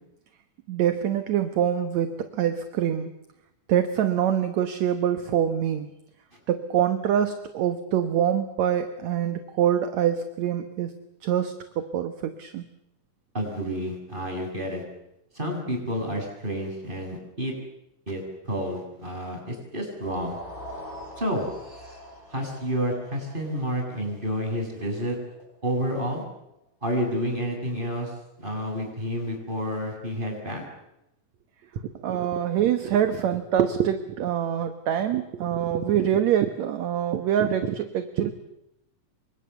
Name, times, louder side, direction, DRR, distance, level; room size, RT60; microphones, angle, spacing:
voice 1, 0.7-3.1 3.7-5.9 6.5-10.9 11.2-12.7 31.8-38.3, right 9 dB, 65° right, 9 dB, 2.4 m, -25 dB
voice 2, 13.3-14.8 15.3-17.5 18.1-20.4 21.2-21.5 22.3-25.2 25.6-26.2 26.8-30.6, equal, 15° right, 2 dB, 7.6 m, -30 dB
sound 1, 19.9-26.2, equal, 10° left, 8.0 m, -44 dB
28.0 x 25.0 x 7.0 m, 0.85 s
omnidirectional pair, 3.8 m